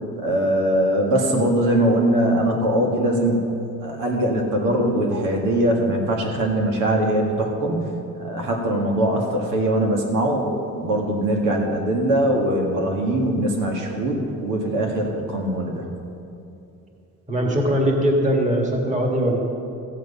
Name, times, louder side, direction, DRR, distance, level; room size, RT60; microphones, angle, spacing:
voice 1, 0.2-3.5 3.8-15.9, right 1 dB, 85° right, 0 dB, 2.0 m, -21 dB
voice 2, 17.3-19.4, equal, 25° right, 1 dB, 1.9 m, -20 dB
14.0 x 9.4 x 5.6 m, 2.7 s
cardioid pair, 125°, 31 cm